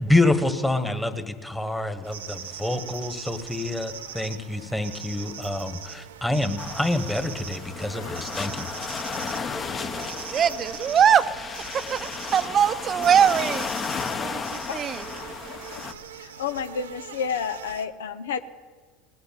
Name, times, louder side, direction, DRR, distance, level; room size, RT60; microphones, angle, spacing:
voice 1, 0.0-8.7, left 2 dB, 5° left, 8 dB, 1.5 m, -27 dB
sound 1, 2.0-17.9, right 8 dB, 80° right, 0.8 m, -41 dB
sound 2, 6.6-15.9, left 5 dB, 35° left, 1.1 m, -34 dB
voice 2, 9.7-13.7 14.2-15.1, right 8 dB, 40° right, 12 dB, 0.7 m, -23 dB
voice 3, 15.5-15.8 16.1-18.4, left 6 dB, 80° left, 11 dB, 0.7 m, -31 dB
19.0 x 8.1 x 8.9 m, 1.5 s
hypercardioid pair, 75°, 0 cm